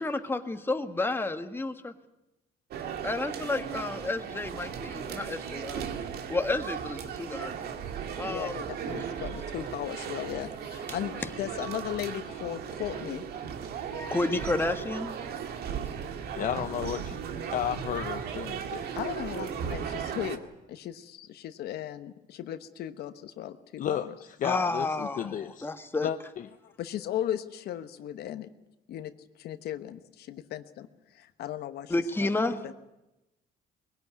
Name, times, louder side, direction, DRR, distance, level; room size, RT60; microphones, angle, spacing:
voice 1, 0.0-1.9 3.0-5.9 6.3-7.5 8.2-8.6 9.3-9.4 13.9-15.2 24.4-26.1 31.9-32.6, left 2 dB, 15° left, 7 dB, 1.6 m, -31 dB
sound 1, 2.7-20.4, right 7 dB, 70° right, 2.1 m, -36 dB
voice 2, 8.3-13.2 18.9-20.4 20.7-24.1 26.8-28.5 28.9-29.1 29.4-30.9 31.1-31.9 32.2-32.3 32.6-32.7, left 11 dB, 70° left, 10 dB, 1.2 m, -36 dB
voice 3, 16.4-17.2 17.5-18.9 23.8-25.7 26.0-26.7, left 10 dB, 50° left, 8 dB, 0.8 m, -33 dB
21.5 x 17.0 x 9.5 m, 0.97 s
cardioid pair, 110°, 17 cm